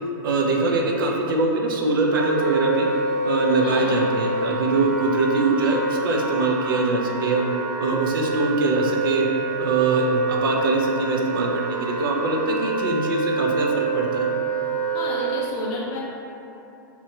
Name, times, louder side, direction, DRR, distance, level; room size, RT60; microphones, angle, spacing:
voice 1, 0.2-2.9 3.2-7.4 7.8-9.3 9.6-14.3, right 3 dB, 85° right, 0 dB, 0.4 m, -23 dB
Wind instrument woodwind instrument, 2.1-15.5, right 2 dB, 60° right, 1.1 m, -27 dB
voice 2, 14.9-16.0, equal, 25° left, -4 dB, 0.3 m, -30 dB
2.8 x 2.2 x 2.7 m, 2.8 s
supercardioid pair, 175°, 11 cm